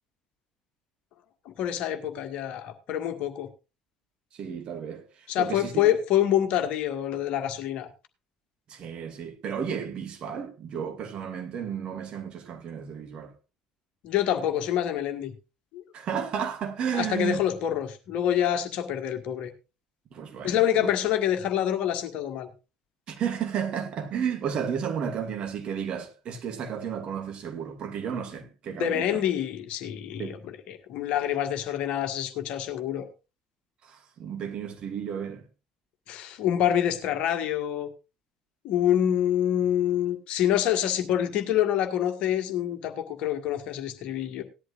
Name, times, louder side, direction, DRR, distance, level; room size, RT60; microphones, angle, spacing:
voice 1, 1.4-3.5 5.3-7.9 14.0-15.3 15.7-15.8 16.9-19.5 20.4-22.5 28.8-33.1 36.1-37.9 38.6-44.4, left 11 dB, 55° left, 1.6 m, -26 dB
voice 2, 4.3-5.8 8.7-13.3 15.9-17.4 20.1-20.7 23.1-29.2 30.2-30.3 33.8-35.5, right 7 dB, 45° right, 2.3 m, -33 dB
17.5 x 11.0 x 2.5 m
figure-of-eight pair, 60°, 2 cm